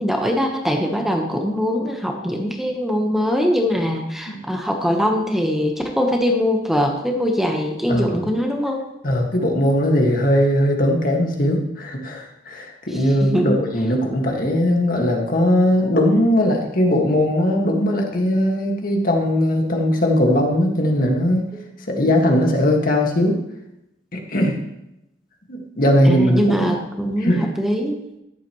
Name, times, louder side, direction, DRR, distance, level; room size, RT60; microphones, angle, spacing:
voice 1, 0.0-8.8 13.2-13.6 26.0-28.0, equal, ahead, 2 dB, 1.1 m, -22 dB
voice 2, 9.0-21.5 21.9-23.4 24.1-24.6 25.5-26.4 27.2-27.5, left 1 dB, 55° left, 1 dB, 1.9 m, -19 dB
14.0 x 11.0 x 3.1 m, 0.86 s
head